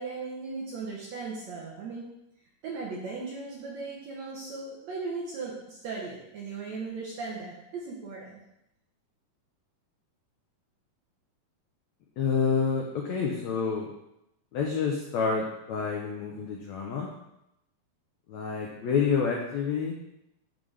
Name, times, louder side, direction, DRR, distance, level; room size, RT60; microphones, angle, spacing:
voice 1, 0.0-2.1 2.6-8.4, right 4 dB, 70° right, -3 dB, 1.7 m, -37 dB
voice 2, 12.2-13.9 14.5-17.1 18.3-19.9, left 6 dB, 85° left, -1 dB, 1.5 m, -28 dB
11.0 x 3.9 x 3.3 m, 0.83 s
omnidirectional pair, 4.2 m